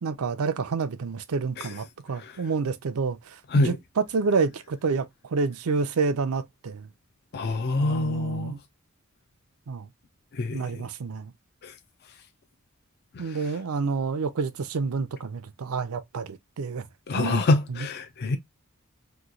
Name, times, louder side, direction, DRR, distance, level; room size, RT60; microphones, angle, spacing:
voice 1, 0.0-6.9 7.8-8.6 9.7-9.9 10.5-11.3 13.2-16.9 17.1-17.4 17.7-17.9, right 4 dB, 90° right, 0.5 m, -29 dB
voice 2, 7.3-8.6 10.3-10.9 11.6-11.7 13.1-13.5 17.1-18.4, left 2 dB, 50° left, 0.4 m, -26 dB
3.0 x 2.2 x 3.7 m
head